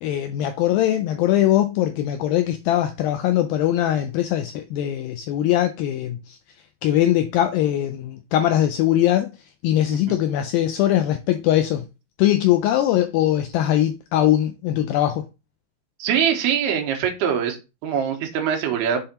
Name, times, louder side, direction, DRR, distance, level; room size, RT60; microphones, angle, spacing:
voice 1, 0.0-6.4 6.8-9.3 9.6-11.9 12.2-15.2, left 12 dB, 85° left, 2.0 m, -21 dB
voice 2, 16.0-17.6 17.8-19.0, right 8 dB, 75° right, 3.1 m, -23 dB
7.8 x 3.5 x 4.3 m
omnidirectional pair, 4.8 m